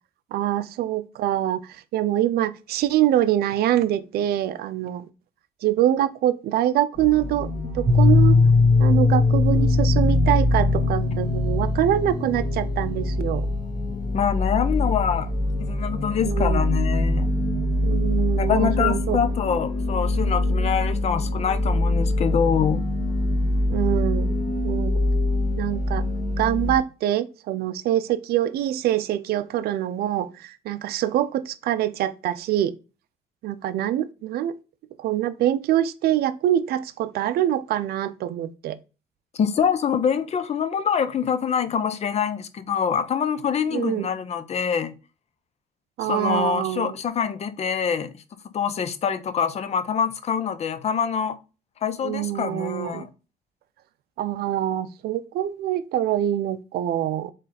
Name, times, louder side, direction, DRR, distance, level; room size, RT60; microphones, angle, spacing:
voice 1, 0.3-5.1 5.6-7.5 7.7-8.4 8.8-13.5 16.2-16.7 17.8-19.2 23.7-24.3 24.6-25.0 25.6-26.0 26.4-32.7 33.4-34.5 35.0-38.8 43.7-44.1 46.0-47.0 52.0-53.0 54.2-57.3, right 12 dB, 65° right, 0.5 m, -24 dB
sound 1, 7.0-26.8, left 1 dB, 20° left, 1.4 m, -25 dB
Piano, 7.9-13.5, left 4 dB, 30° right, 1.4 m, -20 dB
voice 2, 14.1-15.3 15.6-17.3 18.4-22.8 39.3-44.9 46.0-48.2 48.5-51.4 51.8-53.1, left 7 dB, 40° left, 0.6 m, -25 dB
3.9 x 3.2 x 4.1 m
cardioid pair, 110°, 17 cm